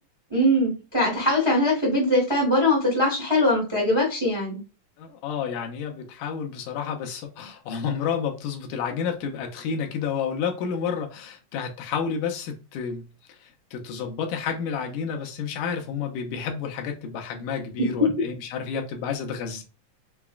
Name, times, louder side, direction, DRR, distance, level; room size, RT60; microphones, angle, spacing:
voice 1, 0.3-4.6 17.8-18.1, left 1 dB, 35° right, 0.4 m, -22 dB
voice 2, 5.0-13.1 13.7-19.6, left 6 dB, 80° left, 2.3 m, -30 dB
5.9 x 2.3 x 2.3 m
omnidirectional pair, 3.8 m